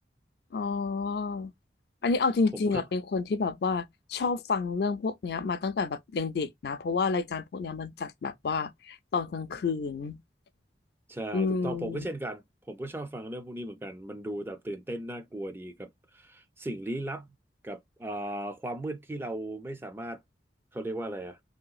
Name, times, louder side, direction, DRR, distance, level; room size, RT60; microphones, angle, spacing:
voice 1, 0.5-1.5 2.0-10.2 11.3-12.1, left 4 dB, 60° left, 0.4 m, -30 dB
voice 2, 2.5-2.8 11.1-17.3 17.6-20.2 20.7-21.4, right 1 dB, 10° right, 0.4 m, -37 dB
3.2 x 2.8 x 2.3 m
head